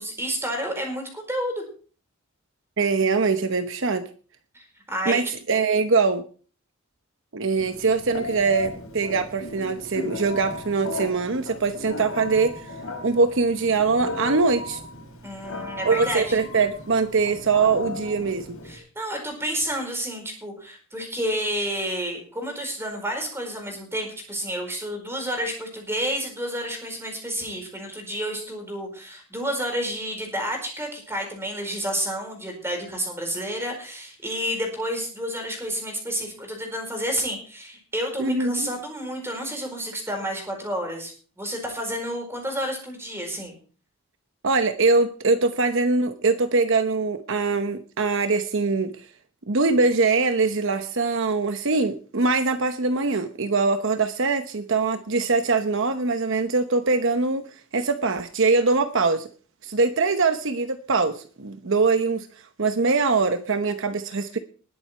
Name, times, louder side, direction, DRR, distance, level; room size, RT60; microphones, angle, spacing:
voice 1, 0.0-1.6 4.5-5.2 15.2-16.4 18.6-43.6, equal, 10° right, 3 dB, 4.7 m, -30 dB
voice 2, 2.8-4.1 5.1-6.2 7.3-12.5 13.0-14.8 15.8-18.6 38.2-38.7 44.4-49.0 49.5-57.4 57.7-59.3 59.6-62.3 62.6-64.4, right 4 dB, 60° right, 9 dB, 0.9 m, -22 dB
Telephone, 7.6-18.8, left 2 dB, 80° left, 5.2 m, -35 dB
20.0 x 7.9 x 4.5 m, 0.40 s
head